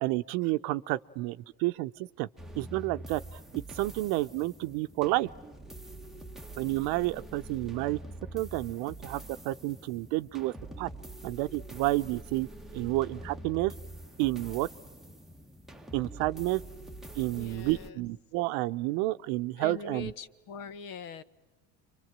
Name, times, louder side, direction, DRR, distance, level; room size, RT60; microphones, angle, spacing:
voice 1, 0.0-2.3 2.6-5.3 6.6-8.0 8.3-10.9 11.2-13.7 14.2-14.7 15.9-16.6 17.2-20.1, right 19 dB, 65° right, 12 dB, 0.9 m, -30 dB
sound 1, 2.4-17.9, right 1 dB, ahead, 1.2 m, -45 dB
voice 2, 17.3-18.0 19.6-21.2, left 6 dB, 55° left, 13 dB, 1.4 m, -42 dB
29.5 x 24.5 x 7.5 m, 1.2 s
hypercardioid pair, 90°, 41 cm